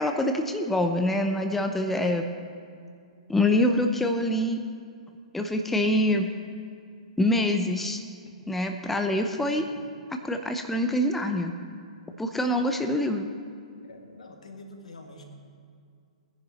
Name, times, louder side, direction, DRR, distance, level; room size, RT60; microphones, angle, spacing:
voice 1, 0.0-2.3 3.3-4.6 5.3-6.3 7.2-8.0 8.5-9.7 10.2-11.5 12.2-13.3, left 1 dB, 5° left, 4 dB, 0.7 m, -25 dB
voice 2, 13.8-15.2, left 2 dB, 70° left, 3 dB, 1.9 m, -46 dB
19.5 x 10.0 x 4.1 m, 2.2 s
figure-of-eight pair, 115°, 4 cm